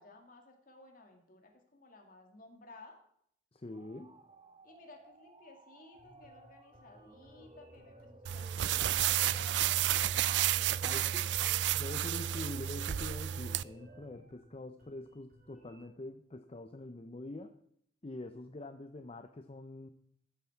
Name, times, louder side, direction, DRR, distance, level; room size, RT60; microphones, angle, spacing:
voice 1, 0.0-3.0 4.6-12.6, left 2 dB, 50° left, 3 dB, 2.4 m, -57 dB
voice 2, 3.5-4.2 10.8-11.3 11.7-17.6 18.0-19.9, left 2 dB, 35° left, 8 dB, 0.6 m, -45 dB
sound 1, 3.7-14.2, right 1 dB, 30° right, 0.8 m, -57 dB
sound 2, 5.9-15.8, right 1 dB, 55° right, 3.5 m, -62 dB
sound 3, 8.2-13.6, right 12 dB, 80° right, 0.4 m, -31 dB
14.0 x 9.4 x 4.6 m, 0.68 s
head